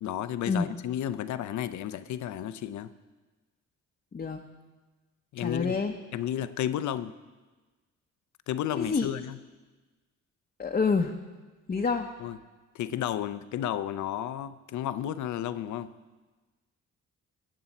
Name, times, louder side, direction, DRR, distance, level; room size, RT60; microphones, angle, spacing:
voice 1, 0.0-2.9 5.3-5.8 6.1-7.1 8.5-9.4 12.2-12.4 12.7-15.9, left 11 dB, 70° left, 14 dB, 0.6 m, -32 dB
voice 2, 5.4-5.9 8.8-9.1 10.6-11.1 11.7-12.1, left 4 dB, 30° left, 2 dB, 0.8 m, -27 dB
19.0 x 7.8 x 4.2 m, 1.3 s
cardioid pair, 90°, 30 cm